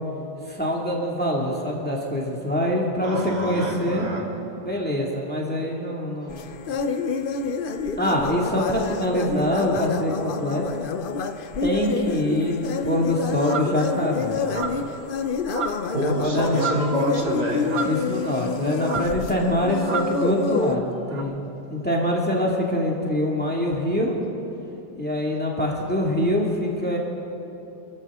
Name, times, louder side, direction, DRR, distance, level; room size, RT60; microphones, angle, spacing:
voice 1, 0.5-4.1 4.6-6.8 8.0-10.6 11.6-14.4 16.2-16.6 17.8-21.4 21.7-24.2 25.0-27.0, left 1 dB, 5° left, -2 dB, 2.1 m, -24 dB
voice 2, 3.0-4.2 15.9-17.7, right 1 dB, 80° right, -2 dB, 3.1 m, -26 dB
sound 1, 6.3-20.8, left 5 dB, 60° left, 0.5 m, -28 dB
sound 2, 13.4-13.8 14.5-14.9 15.5-16.0 16.3-17.0 17.6-18.5 18.8-19.2 19.8-20.2 21.1-21.2, right 5 dB, 50° right, 1.2 m, -31 dB
27.5 x 14.5 x 3.7 m, 2.9 s
omnidirectional pair, 1.7 m